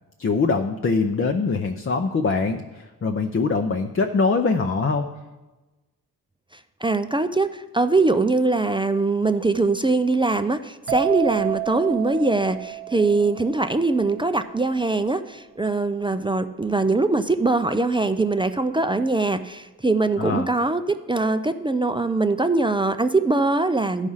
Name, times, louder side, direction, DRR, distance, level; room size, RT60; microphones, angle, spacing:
voice 1, 0.2-5.1 20.2-20.5, left 4 dB, 35° left, 4 dB, 0.6 m, -23 dB
voice 2, 6.8-24.1, right 3 dB, 15° right, 9 dB, 0.4 m, -22 dB
sound 1, 10.9-14.5, right 20 dB, 85° right, 0.8 m, -30 dB
11.0 x 4.9 x 5.6 m, 1.1 s
cardioid pair, 65°, 37 cm